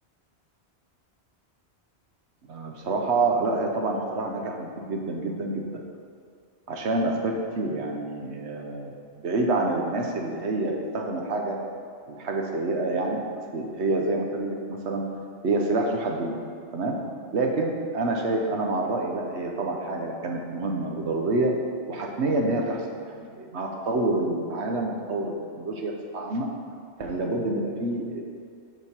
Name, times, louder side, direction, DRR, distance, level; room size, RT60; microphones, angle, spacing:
voice 1, 2.5-5.6 6.7-11.6 12.1-13.2 13.5-15.0 15.4-16.4 16.7-17.0 17.3-21.5 21.9-26.5 27.0-28.2, right 2 dB, 85° right, 1 dB, 1.2 m, -27 dB
8.3 x 5.2 x 4.4 m, 2.3 s
omnidirectional pair, 1.1 m